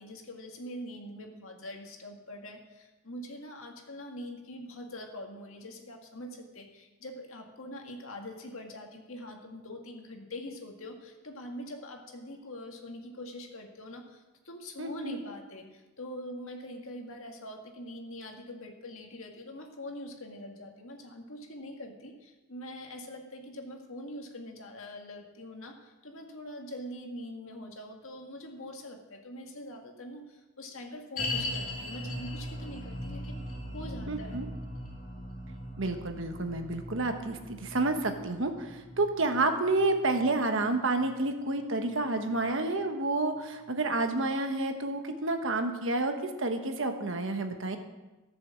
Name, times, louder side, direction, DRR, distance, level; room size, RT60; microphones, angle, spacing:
voice 1, 0.0-33.4 33.7-34.4, left 1 dB, 65° left, 2 dB, 2.0 m, -43 dB
voice 2, 14.8-15.2 34.1-34.5 35.8-46.1 46.4-47.8, right 2 dB, 60° right, 6 dB, 1.2 m, -29 dB
sound 1, 31.2-42.4 42.7-42.8 43.4-43.5, left 1 dB, 40° left, 2.2 m, -40 dB
14.0 x 7.0 x 7.3 m, 1.1 s
head